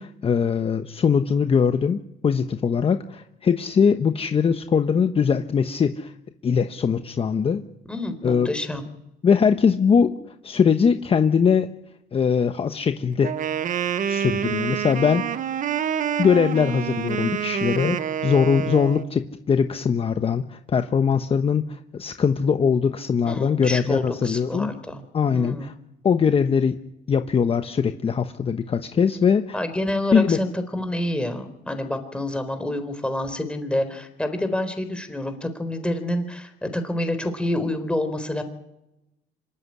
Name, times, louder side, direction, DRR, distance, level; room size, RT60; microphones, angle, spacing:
voice 1, 0.0-6.1 6.4-7.6 8.2-8.5 9.2-10.2 10.4-11.7 12.1-13.3 14.1-15.2 16.2-24.7 25.1-25.7 26.0-26.8 27.1-29.6 30.1-30.4, left 6 dB, 35° left, 8 dB, 1.1 m, -21 dB
voice 2, 7.9-8.8 23.3-25.0 25.3-25.7 29.5-38.4, left 1 dB, 5° left, 8 dB, 4.1 m, -28 dB
Wind instrument woodwind instrument, 13.2-19.1, right 9 dB, 50° right, 1.2 m, -27 dB
26.0 x 14.0 x 9.9 m, 0.89 s
cardioid pair, 110°, 17 cm